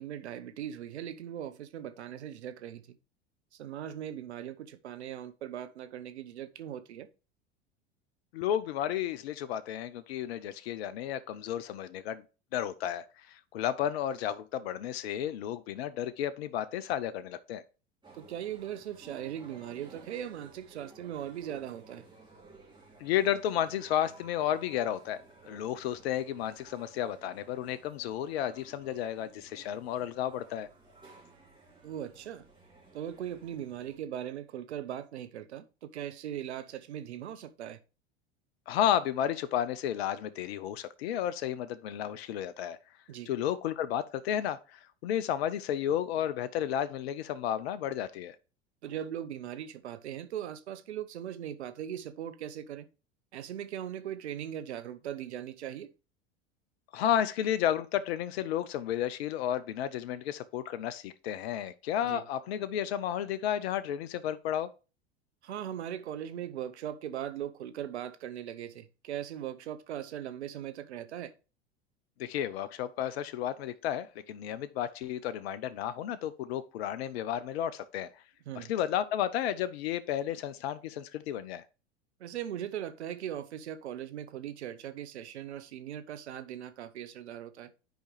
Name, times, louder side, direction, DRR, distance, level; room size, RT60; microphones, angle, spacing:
voice 1, 0.0-3.0 3.5-7.1 18.1-22.0 31.8-32.4 32.9-37.8 43.1-43.3 48.8-52.9 53.3-55.9 62.0-62.2 65.4-71.3 78.5-78.7 82.2-87.7, right 10 dB, 75° right, 0.8 m, -39 dB
voice 2, 8.3-12.2 12.5-17.6 23.0-25.2 25.5-30.7 38.7-42.8 43.3-48.4 56.9-64.7 72.2-78.1 78.6-81.6, left 10 dB, 65° left, 0.6 m, -32 dB
sound 1, 18.0-34.0, right 3 dB, 15° right, 2.7 m, -56 dB
10.0 x 4.9 x 3.1 m
figure-of-eight pair, 80°, 33 cm